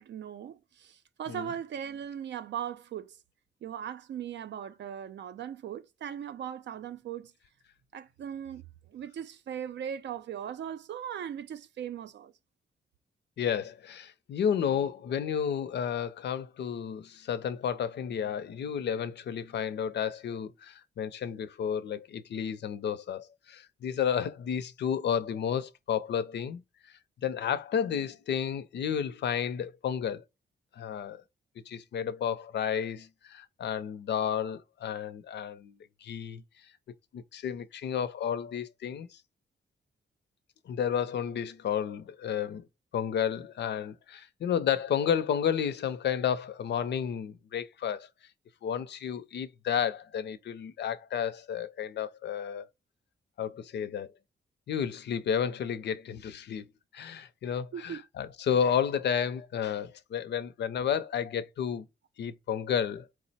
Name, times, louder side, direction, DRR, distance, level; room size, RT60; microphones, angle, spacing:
voice 1, 0.0-3.1 3.6-7.3 7.9-8.6 8.9-12.3 57.7-58.0, right 9 dB, 80° right, 0.5 m, -39 dB
voice 2, 13.4-30.2 30.7-31.2 31.7-36.4 37.1-39.2 40.7-42.7 42.9-48.1 48.6-52.7 53.4-54.1 54.7-56.7 56.9-61.9 62.2-63.1, left 8 dB, 75° left, 0.5 m, -32 dB
4.7 x 2.0 x 4.0 m
wide cardioid pair, 155°, 18 cm